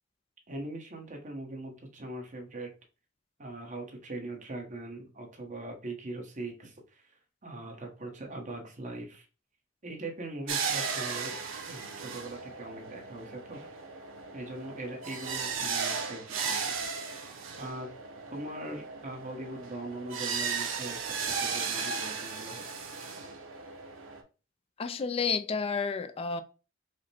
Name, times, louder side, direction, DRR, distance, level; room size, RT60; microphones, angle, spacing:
voice 1, 0.5-2.7 3.4-7.1 7.4-9.3 9.8-11.3 11.7-13.6 14.3-16.7 17.6-17.9 18.3-22.6, right 2 dB, 40° right, 1.1 m, -41 dB
sound 1, 10.5-24.2, right 5 dB, 90° right, 0.8 m, -36 dB
voice 2, 24.8-26.4, left 5 dB, 30° left, 0.4 m, -30 dB
4.9 x 2.2 x 4.2 m
head